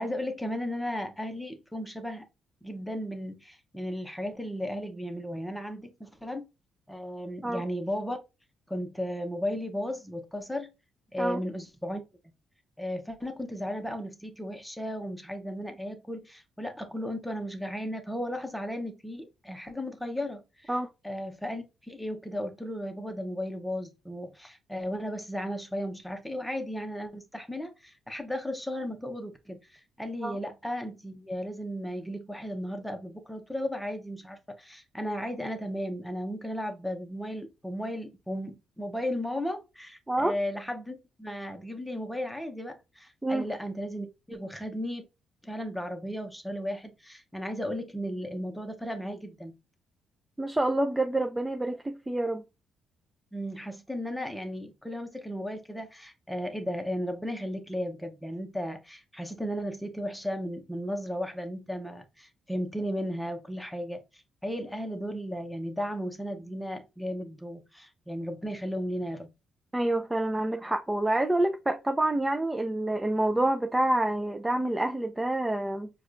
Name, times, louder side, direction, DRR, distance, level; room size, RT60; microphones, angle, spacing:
voice 1, 0.0-2.3 2.6-6.5 6.9-8.2 8.7-10.7 11.1-12.0 12.8-20.7 21.0-45.0 45.4-49.5 53.3-69.3, equal, 5° left, 0.8 m, -35 dB
voice 2, 50.4-52.4 69.7-75.9, right 1 dB, 15° right, 0.4 m, -27 dB
4.6 x 2.3 x 2.5 m
cardioid pair, 90°, 0 cm